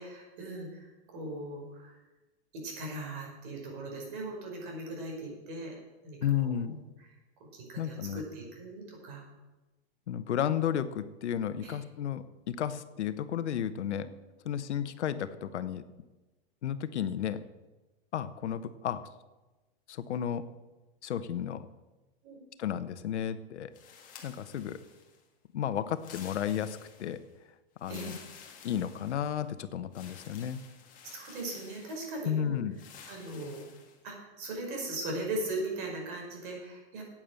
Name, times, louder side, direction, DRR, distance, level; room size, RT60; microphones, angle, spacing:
voice 1, 0.0-2.0 2.5-5.8 6.0-6.8 7.5-9.2 11.6-11.8 13.9-14.0 22.2-22.4 27.9-28.1 31.0-32.6 33.1-33.6 34.0-37.0, right 2 dB, 45° right, 0 dB, 5.3 m, -39 dB
voice 2, 6.2-6.7 7.8-8.2 10.1-14.1 14.4-15.8 16.6-17.4 18.1-19.0 19.9-20.4 21.0-21.6 22.6-23.7 24.2-24.8 25.5-27.2 27.8-28.2 28.6-30.6 32.3-32.8, left 9 dB, 80° left, 12 dB, 1.1 m, -33 dB
sound 1, 23.7-25.2 25.9-27.2 27.8-29.5 29.9-32.3 32.7-34.0, left 7 dB, 25° left, 1.8 m, -52 dB
11.0 x 8.7 x 7.7 m, 1.1 s
hypercardioid pair, 155°, 34 cm